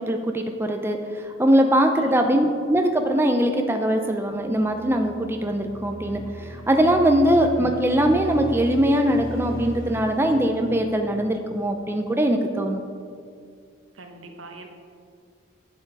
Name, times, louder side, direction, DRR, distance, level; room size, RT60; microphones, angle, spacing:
voice 1, 0.0-12.8, right 1 dB, 10° right, 4 dB, 0.5 m, -21 dB
voice 2, 1.9-2.4 13.9-14.7, right 2 dB, 85° right, 4 dB, 1.2 m, -44 dB
sound 1, 4.3-11.7, equal, 40° left, 2.8 m, -38 dB
10.5 x 7.6 x 4.7 m, 2.3 s
head